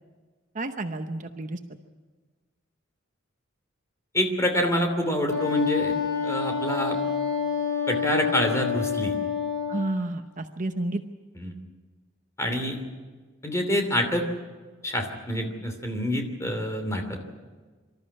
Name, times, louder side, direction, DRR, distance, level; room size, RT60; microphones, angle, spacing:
voice 1, 0.5-1.8 9.7-11.0, right 2 dB, 40° right, 7 dB, 0.9 m, -31 dB
voice 2, 4.1-5.9 6.2-7.0 7.9-9.1 11.4-11.5 12.4-12.8 13.4-14.2 14.8-17.2, equal, 15° left, 4 dB, 2.9 m, -26 dB
Wind instrument woodwind instrument, 5.3-9.9, left 6 dB, 60° left, 7.4 m, -28 dB
24.5 x 13.5 x 9.7 m, 1.4 s
head